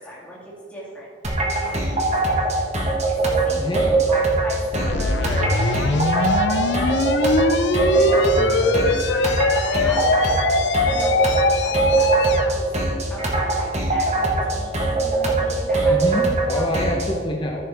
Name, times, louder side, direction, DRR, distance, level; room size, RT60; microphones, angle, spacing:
voice 1, 0.0-2.6 3.1-6.9 7.8-9.4 9.7-10.3 10.9-11.2 11.6-12.8 13.1-16.0 16.4-16.8, equal, 5° left, -7 dB, 2.6 m, -35 dB
sound 1, 1.2-17.1, right 3 dB, 35° right, 1.3 m, -22 dB
voice 2, 3.5-4.0 8.0-8.8 15.8-17.7, left 1 dB, 25° left, 0 dB, 0.9 m, -27 dB
sound 2, 4.7-12.5, left 3 dB, 65° left, 0.5 m, -22 dB
14.0 x 6.7 x 3.5 m, 2.2 s
head